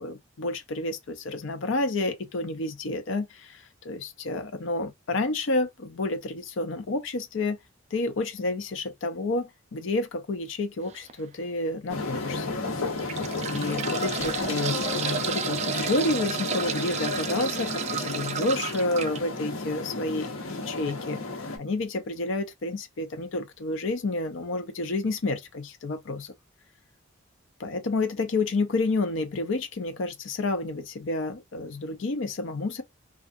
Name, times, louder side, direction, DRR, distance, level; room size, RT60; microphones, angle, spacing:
voice 1, 0.0-7.6 7.9-12.5 13.4-21.2 21.6-26.3 27.6-32.8, left 2 dB, 65° left, 0.5 m, -30 dB
sound 1, 10.9-11.1 11.7-11.8 12.8-19.2 20.8-20.9 21.2-21.3, right 8 dB, 35° right, 0.3 m, -32 dB
sound 2, 11.9-21.6, left 3 dB, 85° left, 1.0 m, -32 dB
2.3 x 2.3 x 2.5 m
head